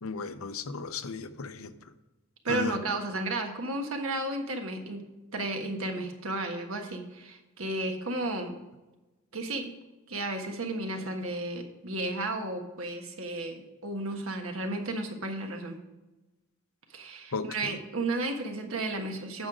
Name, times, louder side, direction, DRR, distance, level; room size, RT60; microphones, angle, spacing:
voice 1, 0.0-1.7 2.5-2.8 17.3-17.7, left 4 dB, 80° left, 11 dB, 0.7 m, -35 dB
voice 2, 2.4-5.1 5.3-8.5 9.3-9.7 10.1-15.8 16.9-19.5, right 2 dB, 75° right, 4 dB, 1.4 m, -33 dB
9.2 x 6.3 x 5.0 m, 1.1 s
head